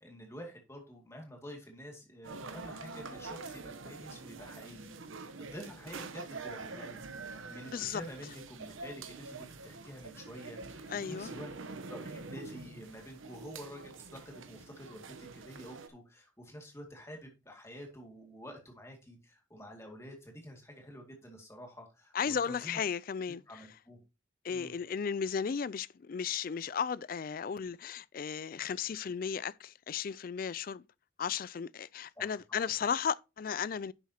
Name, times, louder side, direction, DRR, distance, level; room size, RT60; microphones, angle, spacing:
voice 1, 0.0-7.0 7.3-22.8 23.5-24.0 24.5-24.7 32.2-32.7, equal, 15° left, 2.2 m, -49 dB
sound 1, 2.2-15.9, right 3 dB, 80° right, 1.0 m, -46 dB
voice 2, 10.9-11.3 22.1-23.4 24.4-30.8 31.2-33.9, left 7 dB, 45° left, 0.3 m, -35 dB
10.5 x 7.2 x 2.9 m
head